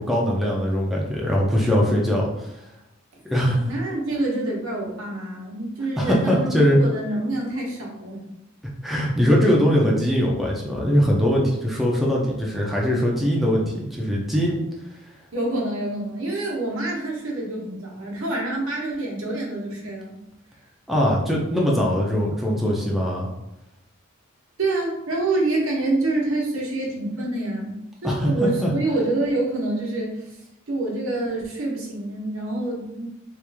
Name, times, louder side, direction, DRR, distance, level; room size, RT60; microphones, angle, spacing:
voice 1, 0.0-2.5 3.2-3.7 6.0-6.8 8.8-14.6 20.9-23.3 28.0-28.7, equal, ahead, -4 dB, 0.4 m, -21 dB
voice 2, 3.6-8.2 15.3-20.2 24.6-30.4 30.7-33.1, right 2 dB, 80° right, -2 dB, 0.9 m, -27 dB
3.0 x 2.4 x 3.4 m, 0.88 s
head